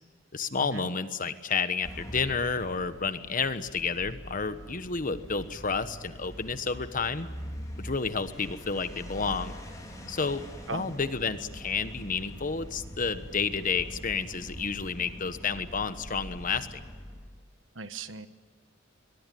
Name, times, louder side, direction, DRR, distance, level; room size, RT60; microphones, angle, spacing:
voice 1, 0.3-7.3 7.8-9.6 10.1-10.4 10.7-16.8, left 5 dB, 45° left, 11 dB, 1.3 m, -30 dB
sound 1, 1.8-17.3, equal, 20° left, 4.7 m, -43 dB
voice 2, 17.7-18.3, right 4 dB, 75° right, 11 dB, 1.2 m, -38 dB
23.0 x 22.5 x 9.4 m, 1.4 s
head